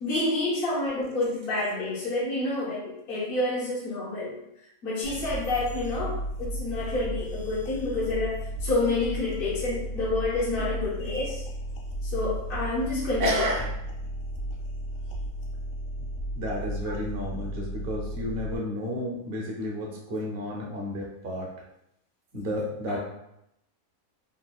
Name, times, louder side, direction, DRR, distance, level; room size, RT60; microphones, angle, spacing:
voice 1, 0.0-4.3 4.8-11.4 12.0-13.4, left 2 dB, 50° left, -7 dB, 0.8 m, -28 dB
sound 1, 5.0-18.6, right 1 dB, 75° left, 1.0 m, -34 dB
voice 2, 13.2-13.7 16.3-21.5 22.3-23.0, equal, 55° right, -2 dB, 0.7 m, -31 dB
3.5 x 2.3 x 2.3 m, 0.80 s
omnidirectional pair, 1.5 m